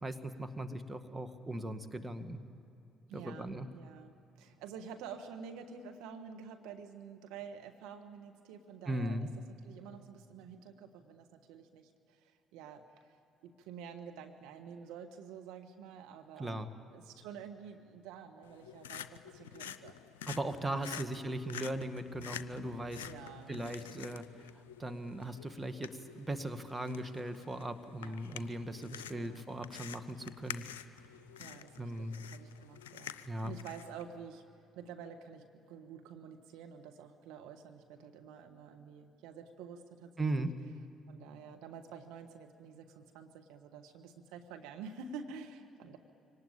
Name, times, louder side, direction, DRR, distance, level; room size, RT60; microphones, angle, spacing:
voice 1, 0.0-2.4 3.1-3.7 8.9-9.3 16.4-16.7 20.3-23.1 23.5-24.2 24.8-30.6 31.8-32.2 33.2-33.5 40.2-40.5, right 1 dB, 20° right, 8 dB, 1.9 m, -38 dB
voice 2, 3.1-4.1 4.4-9.2 9.6-13.2 13.4-16.6 16.9-20.0 20.6-21.1 23.0-24.1 28.0-28.3 29.0-29.5 31.4-34.4 34.8-40.5 41.1-46.0, right 6 dB, 75° right, 6 dB, 1.3 m, -49 dB
sound 1, 18.4-34.0, left 9 dB, 85° left, 0.5 m, -49 dB
24.5 x 18.5 x 8.9 m, 2.8 s
hypercardioid pair, 50°, 0 cm